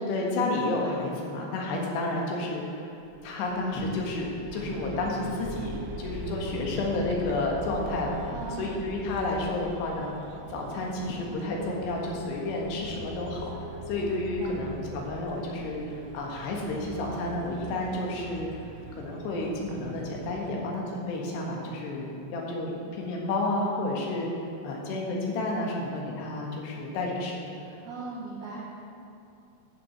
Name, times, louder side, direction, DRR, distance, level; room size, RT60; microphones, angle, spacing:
voice 1, 0.0-2.9 3.2-10.1 10.5-13.4 13.9-18.5 19.0-27.5, left 2 dB, 75° left, -1 dB, 3.7 m, -31 dB
sound 1, 3.0-18.0, left 2 dB, 60° left, 1.3 m, -43 dB
sound 2, 4.5-20.5, right 5 dB, 80° right, 2.8 m, -44 dB
voice 2, 8.3-8.7 14.2-14.6 27.6-28.7, right 4 dB, 60° right, -6 dB, 2.4 m, -39 dB
10.5 x 6.1 x 8.0 m, 2.7 s
omnidirectional pair, 4.9 m